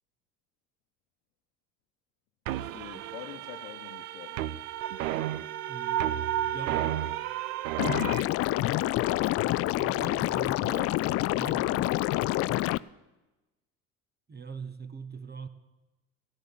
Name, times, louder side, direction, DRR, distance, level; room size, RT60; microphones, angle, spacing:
voice 1, 2.5-4.4 8.1-9.3, left 14 dB, 65° left, 1.0 m, -45 dB
sound 1, 2.5-8.2, right 12 dB, 70° right, 0.7 m, -32 dB
voice 2, 5.7-7.0 9.7-12.0 14.3-15.5, right 5 dB, 25° right, 1.1 m, -42 dB
Liquid, 7.8-12.8, left 16 dB, 35° left, 0.4 m, -27 dB
15.0 x 11.0 x 7.4 m
figure-of-eight pair, 60°, 42 cm